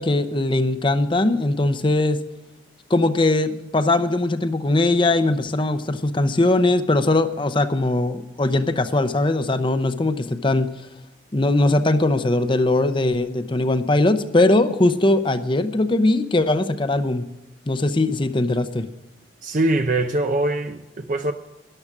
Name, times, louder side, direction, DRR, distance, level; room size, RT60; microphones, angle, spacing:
voice 1, 0.0-2.2 2.9-10.7 11.3-17.3 17.7-18.9, left 2 dB, 25° left, 0.7 m, -20 dB
voice 2, 19.4-21.3, right 2 dB, 45° right, 0.6 m, -22 dB
13.5 x 11.5 x 6.1 m
head